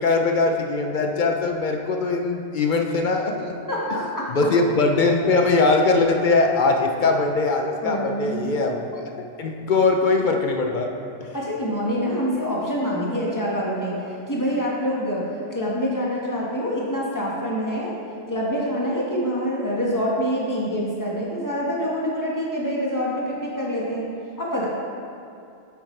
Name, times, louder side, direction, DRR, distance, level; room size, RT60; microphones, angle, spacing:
voice 1, 0.0-3.5 4.3-10.9, left 3 dB, 50° left, 3 dB, 0.7 m, -21 dB
voice 2, 3.7-4.5 7.8-8.8 11.3-14.0 14.3-15.2 15.5-17.9 18.3-24.1 24.4-24.7, equal, 15° left, -5 dB, 1.5 m, -26 dB
8.4 x 8.3 x 3.3 m, 2.5 s
omnidirectional pair, 1.2 m